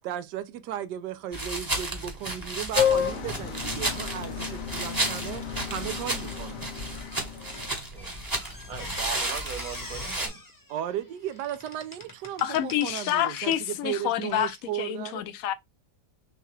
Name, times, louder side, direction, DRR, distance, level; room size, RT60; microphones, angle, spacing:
voice 1, 0.0-6.6 10.7-15.3, right 11 dB, 85° right, 1.2 m, -35 dB
sound 1, 1.3-10.3, right 1 dB, 15° right, 0.7 m, -33 dB
sound 2, 2.8-7.7, left 8 dB, 85° left, 1.4 m, -31 dB
Squeak, 7.5-13.7 14.3-14.5, left 2 dB, 25° left, 0.4 m, -44 dB
voice 2, 7.8-8.1 8.7-10.4, right 7 dB, 65° right, 1.1 m, -39 dB
voice 3, 12.4-15.5, left 11 dB, 65° left, 0.9 m, -28 dB
6.5 x 2.3 x 3.2 m
omnidirectional pair, 1.8 m